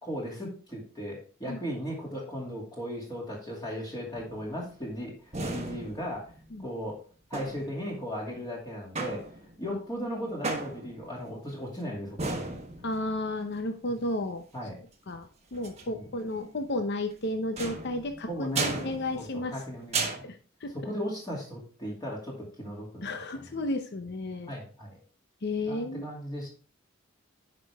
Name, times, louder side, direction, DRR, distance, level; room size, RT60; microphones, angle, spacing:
voice 1, 0.0-6.3 6.6-7.0 7.3-9.3 9.6-12.5 13.9-14.0 14.5-14.8 16.0-16.1 18.3-18.9 19.1-20.3 20.7-23.6 24.5-25.0 25.7-26.5, equal, 20° left, -3 dB, 2.5 m, -37 dB
sound 1, 4.1-4.6 5.3-6.6 7.3-7.9 8.9-9.7 10.4-11.2 12.2-13.2 15.5-15.8 17.6-19.6 19.9-20.2, right 3 dB, 35° right, 1.2 m, -35 dB
voice 2, 12.8-14.4 15.1-19.5 20.2-20.7 23.0-24.5 25.4-26.1, left 1 dB, 55° left, 6 dB, 0.8 m, -33 dB
9.8 x 5.2 x 3.5 m, 0.39 s
head